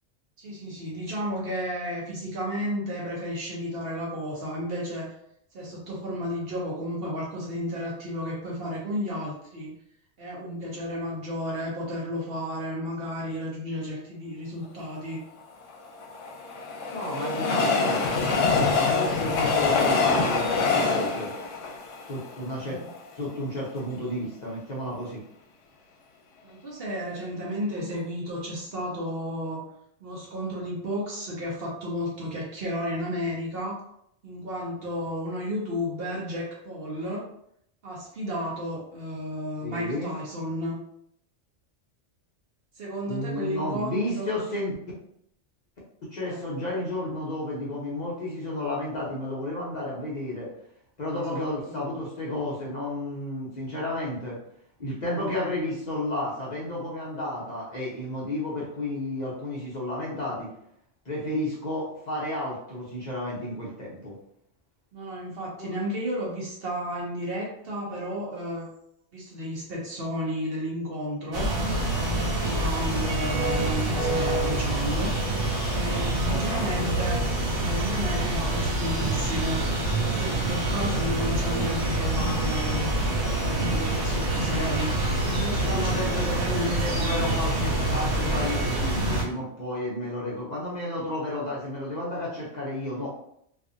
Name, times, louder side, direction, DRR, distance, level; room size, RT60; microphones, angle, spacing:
voice 1, 0.4-5.1 5.5-9.8 10.2-15.2 22.6-22.8 26.4-29.6 30.0-33.8 34.2-37.2 37.8-40.8 42.8-44.3 46.3-46.4 51.1-51.8 61.2-61.4 64.9-68.7 69.1-75.1 75.7-77.2 77.5-79.6 80.0-86.7, equal, 55° right, -3 dB, 0.9 m, -33 dB
Train, 15.7-23.0 23.5-23.6 23.8-23.9, left 4 dB, 90° left, 0.9 m, -25 dB
voice 2, 16.9-21.3 22.1-22.8 23.2-25.2 39.6-40.2 43.1-44.7 46.0-50.5 51.0-54.4 54.8-60.5 61.1-64.2 65.5-65.8 76.0-76.8 85.6-93.1, left 1 dB, 45° left, -6 dB, 0.7 m, -32 dB
sound 1, 71.3-89.2, right 1 dB, 80° right, 1.1 m, -26 dB
2.6 x 2.4 x 2.5 m, 0.72 s
omnidirectional pair, 1.2 m